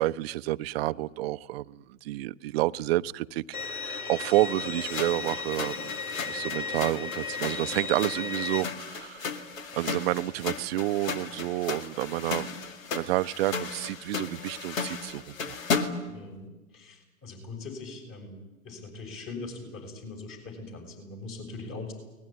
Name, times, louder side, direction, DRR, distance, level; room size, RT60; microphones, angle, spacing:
voice 1, 0.0-6.0 6.3-9.3 9.7-12.6 12.9-15.6, right 16 dB, 45° right, 0.7 m, -29 dB
Bowed string instrument, 3.5-8.6, left 4 dB, 85° left, 1.3 m, -35 dB
sound 1, 4.8-16.1, left 5 dB, 70° left, 2.4 m, -35 dB
voice 2, 16.1-18.4 18.6-21.9, left 3 dB, 30° left, 7.0 m, -41 dB
23.0 x 20.0 x 9.9 m
hypercardioid pair, 115°, 42 cm